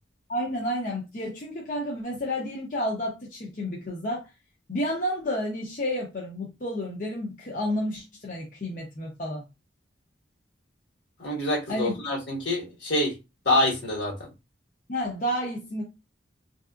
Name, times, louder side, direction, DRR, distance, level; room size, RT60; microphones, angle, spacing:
voice 1, 0.3-4.3 4.7-9.4 11.7-12.0 14.9-15.8, equal, 45° left, 0.6 m, -30 dB
voice 2, 11.2-13.1 13.4-14.1, left 1 dB, 70° left, 1.5 m, -26 dB
3.3 x 2.7 x 2.3 m
head